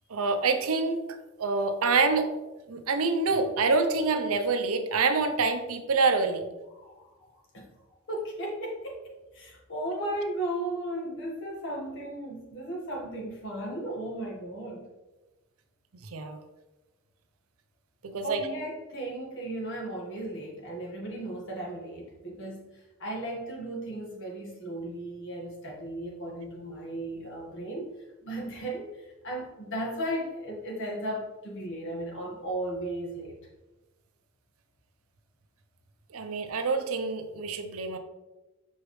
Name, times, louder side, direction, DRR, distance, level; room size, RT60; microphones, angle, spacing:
voice 1, 0.1-2.3 2.7-6.4 16.0-16.4 18.0-18.4 36.1-38.0, right 4 dB, 70° right, 8 dB, 0.6 m, -26 dB
voice 2, 6.7-7.7 8.1-9.0 9.3-14.9 18.2-33.4, right 1 dB, 55° left, -1 dB, 1.5 m, -36 dB
6.3 x 4.9 x 3.2 m, 1.1 s
head